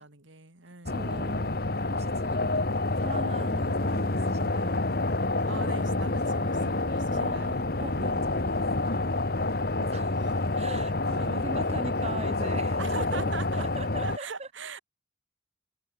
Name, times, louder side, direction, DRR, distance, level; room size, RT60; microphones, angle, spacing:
voice 1, 0.0-1.1 5.5-7.5 9.7-9.8 10.2-10.3 11.0-12.0 12.8-13.7 14.0-14.8, right 4 dB, 75° right, 3.1 m, -41 dB
sound 1, 0.9-14.2, left 2 dB, 50° left, 1.5 m, -28 dB
voice 2, 0.9-1.6 1.9-2.7 3.0-4.9 7.1-14.5, right 2 dB, 30° right, 2.2 m, -41 dB
head